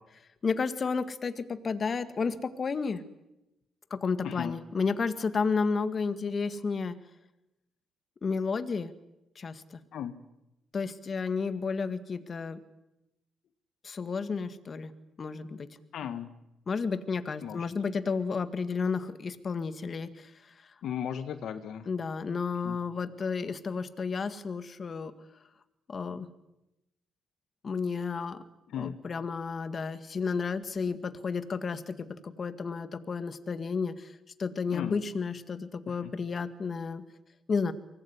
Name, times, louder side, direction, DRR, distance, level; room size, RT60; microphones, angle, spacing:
voice 1, 0.4-3.0 3.9-7.0 8.2-8.9 9.4-9.8 10.7-12.6 13.8-14.9 15.2-15.7 16.7-20.3 21.9-25.1 25.9-26.3 27.6-28.4 28.8-34.1 34.4-37.0 37.5-37.7, left 5 dB, 40° left, 11 dB, 1.9 m, -32 dB
voice 2, 4.2-4.6 9.9-10.1 15.9-16.3 17.4-17.7 20.8-21.9 22.6-22.8 28.7-28.9 34.7-35.0 35.9-36.1, left 9 dB, 70° left, 10 dB, 1.6 m, -36 dB
24.0 x 19.5 x 9.7 m, 0.91 s
cardioid pair, 90°, 0 cm